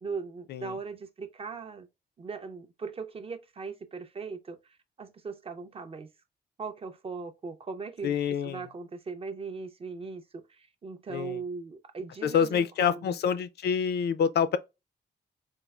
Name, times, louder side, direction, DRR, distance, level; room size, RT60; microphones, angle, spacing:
voice 1, 0.0-1.9 2.2-6.1 6.6-13.2, right 4 dB, 30° right, 0.4 m, -39 dB
voice 2, 8.0-8.6 11.1-11.4 12.2-14.6, left 7 dB, 65° left, 0.4 m, -27 dB
4.3 x 2.3 x 2.2 m
wide cardioid pair, 160°, 18 cm